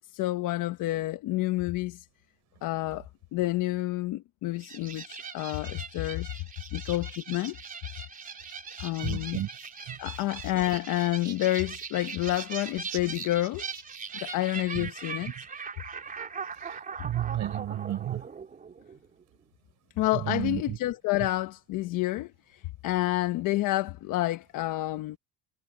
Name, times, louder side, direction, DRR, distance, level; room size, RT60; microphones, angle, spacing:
voice 1, 0.0-2.1 2.6-3.0 3.3-6.3 6.7-7.6 8.8-9.4 10.0-13.6 14.1-15.3 20.0-25.2, left 17 dB, 55° left, 1.1 m, -29 dB
sound 1, 4.6-19.2, right 6 dB, 20° right, 3.5 m, -40 dB
voice 2, 9.0-9.5 9.9-10.0 14.7-14.9 15.4-15.5 16.5-18.3 20.1-20.8, right 12 dB, 45° right, 5.4 m, -33 dB
cardioid pair, 150°, 39 cm